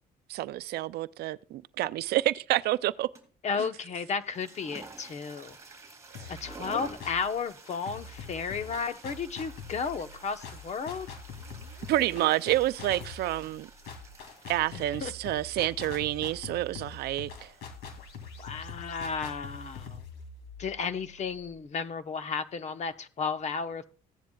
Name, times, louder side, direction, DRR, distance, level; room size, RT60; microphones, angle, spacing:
voice 1, 0.3-3.1 6.1-6.3 11.9-13.7 14.5-17.5, right 15 dB, 75° right, 0.5 m, -29 dB
sound 1, 3.2-3.5 4.2-20.0, right 3 dB, 20° right, 2.7 m, -51 dB
voice 2, 3.4-5.6 6.3-11.1 14.7-15.1 18.4-20.0 20.6-23.8, left 5 dB, 40° left, 1.0 m, -33 dB
sound 2, 6.1-7.4 7.9-21.6, left 5 dB, 85° left, 2.5 m, -44 dB
16.0 x 10.0 x 2.3 m
cardioid pair, 110°, 17 cm